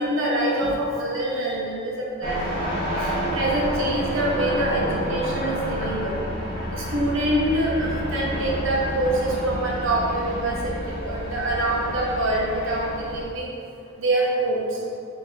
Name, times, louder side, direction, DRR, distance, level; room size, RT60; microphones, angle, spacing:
voice 1, 0.0-2.7 3.0-6.2 6.7-13.5 14.0-14.8, right 1 dB, 70° right, -3 dB, 0.7 m, -25 dB
sound 1, 2.2-13.3, equal, 30° left, 1.0 m, -29 dB
3.0 x 2.5 x 3.4 m, 2.4 s
head